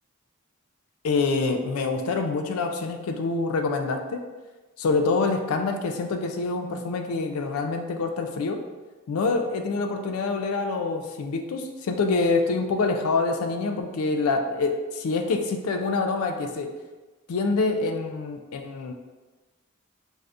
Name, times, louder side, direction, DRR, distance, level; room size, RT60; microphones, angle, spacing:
voice 1, 1.0-4.2 4.8-8.6 9.1-16.7 17.3-18.9, left 3 dB, 70° left, 5 dB, 0.4 m, -26 dB
2.6 x 2.4 x 3.3 m, 1.2 s
head